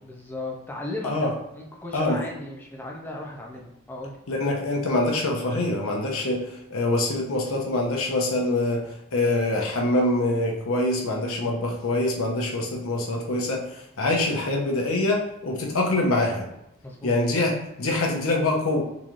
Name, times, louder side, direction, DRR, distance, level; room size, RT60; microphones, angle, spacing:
voice 1, 0.0-4.2 16.8-17.1, left 2 dB, 10° left, -1 dB, 0.4 m, -36 dB
voice 2, 4.3-8.8 9.1-16.5 17.0-18.8, left 2 dB, 70° left, 0 dB, 0.8 m, -25 dB
3.9 x 3.1 x 2.4 m, 0.84 s
head